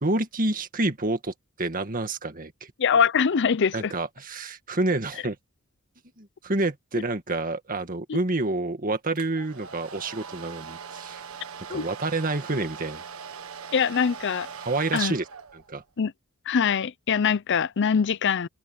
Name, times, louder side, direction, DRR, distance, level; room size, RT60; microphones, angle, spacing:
voice 1, 0.0-2.7 3.7-5.4 6.2-11.2 11.7-13.0 14.5-15.3 15.5-15.8, right 2 dB, 40° right, 2.0 m, -28 dB
voice 2, 2.8-3.9 8.1-8.2 11.7-11.8 13.7-14.5 14.9-15.1 16.0-16.1 16.5-18.5, left 6 dB, 55° left, 0.6 m, -23 dB
Domestic sounds home sounds, 9.2-15.8, right 6 dB, 80° right, 1.5 m, -41 dB
head